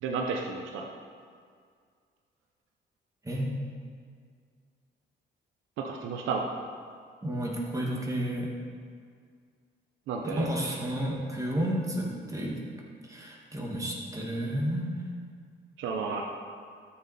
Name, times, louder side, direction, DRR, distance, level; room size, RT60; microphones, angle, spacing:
voice 1, 0.0-0.9 5.8-6.4 10.1-10.5 15.8-16.2, right 5 dB, 85° right, 1 dB, 0.9 m, -32 dB
voice 2, 7.2-8.5 10.2-12.6 13.0-14.9, equal, 15° right, -2 dB, 2.1 m, -31 dB
12.0 x 6.9 x 4.3 m, 2.1 s
cardioid pair, 90°, 20 cm